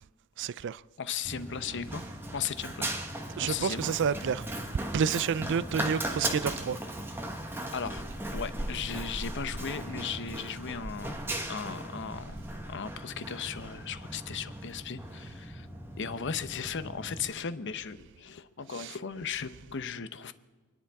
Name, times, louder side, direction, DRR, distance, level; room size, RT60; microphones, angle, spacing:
voice 1, 0.4-0.8 3.4-4.5 4.9-6.8 18.8-18.9, right 7 dB, 55° right, 0.4 m, -29 dB
voice 2, 1.0-2.0 2.3-2.9 3.4-3.8 7.7-8.0 8.3-11.2 11.5-15.7 16.0-20.3, left 6 dB, 55° left, 0.8 m, -36 dB
Run, 1.2-17.3, right 1 dB, 10° right, 1.3 m, -38 dB
29.5 x 10.5 x 3.5 m
head